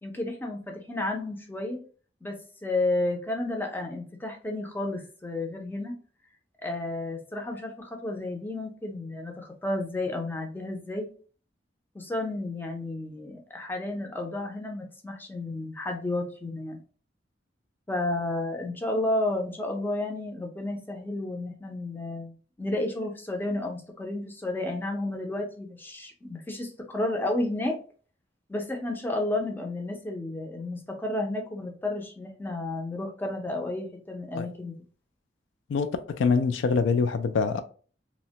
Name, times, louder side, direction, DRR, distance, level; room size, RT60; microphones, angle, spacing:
voice 1, 0.0-1.8 2.2-5.9 6.6-11.1 11.9-16.8 17.9-27.8 28.5-34.8, left 2 dB, 10° left, 0.5 m, -32 dB
voice 2, 35.7-37.6, left 5 dB, 75° left, 0.3 m, -24 dB
2.8 x 2.1 x 2.7 m
head